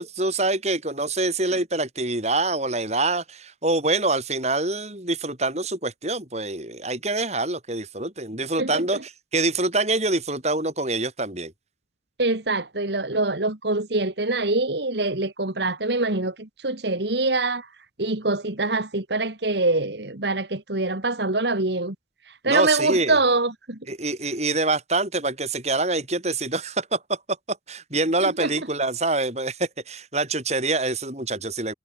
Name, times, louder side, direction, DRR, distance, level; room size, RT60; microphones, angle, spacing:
voice 1, 0.0-11.5 22.5-23.2 23.9-27.2 27.5-31.7, right 2 dB, 35° right, 6.9 m, -25 dB
voice 2, 12.2-17.7 18.0-22.0 22.4-23.8 28.2-28.5, right 2 dB, 65° right, 2.1 m, -24 dB
head